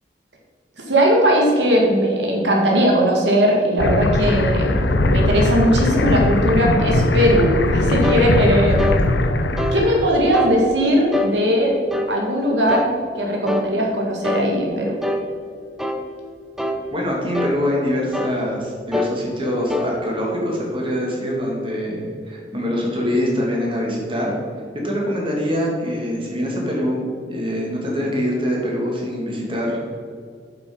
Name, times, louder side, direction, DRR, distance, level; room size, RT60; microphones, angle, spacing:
voice 1, 0.8-8.8 9.7-11.7 12.1-15.0, equal, 85° right, -1 dB, 1.9 m, -19 dB
sound 1, 3.8-10.2, left 2 dB, 85° left, 0.8 m, -19 dB
sound 2, 8.0-8.3 8.8-9.0 9.6-9.8 10.3-10.6 11.1-11.3 11.9-12.1 12.7-12.9 13.5-13.7 14.2-14.5 15.0-15.3 15.8-16.0 16.6-16.8 17.3-17.6 18.1-18.4 18.9-19.2 19.7-19.9, left 2 dB, ahead, 0.7 m, -24 dB
voice 2, 16.9-24.3 24.8-29.8, equal, 30° right, -2 dB, 2.5 m, -24 dB
9.0 x 7.4 x 5.4 m, 2.2 s
head